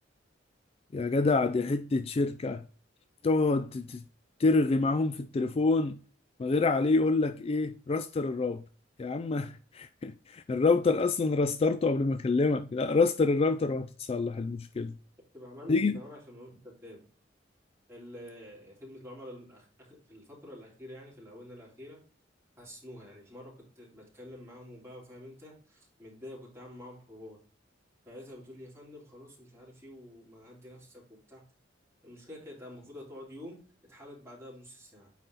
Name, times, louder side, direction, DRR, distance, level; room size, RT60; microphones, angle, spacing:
voice 1, 0.9-2.6 3.2-4.0 4.4-6.0 6.4-8.6 9.0-14.9 15.7-16.0, left 3 dB, 30° left, 0.3 m, -27 dB
voice 2, 15.3-17.1 17.9-22.0 22.6-27.4 28.1-31.4 32.0-33.6 33.9-35.1, left 1 dB, 15° right, 3.4 m, -48 dB
9.1 x 4.1 x 4.0 m
head